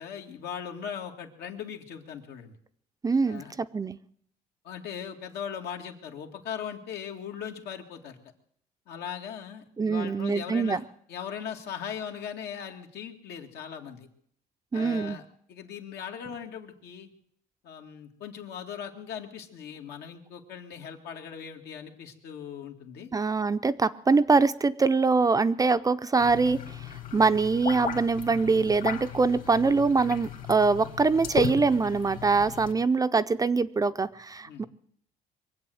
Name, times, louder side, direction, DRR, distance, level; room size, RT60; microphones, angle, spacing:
voice 1, 0.0-2.6 3.2-3.5 4.6-8.2 8.9-10.8 11.1-14.1 14.7-15.2 15.5-17.1 17.6-23.1 27.1-27.2 34.5-34.7, left 8 dB, 75° left, 3 dB, 2.1 m, -39 dB
voice 2, 3.0-4.0 9.8-10.8 14.7-15.2 23.1-26.6 27.1-34.6, right 4 dB, 20° right, 12 dB, 0.5 m, -24 dB
sound 1, 26.2-32.7, left 8 dB, 55° left, 2.3 m, -36 dB
23.0 x 8.1 x 7.8 m, 0.67 s
cardioid pair, 110°, 17 cm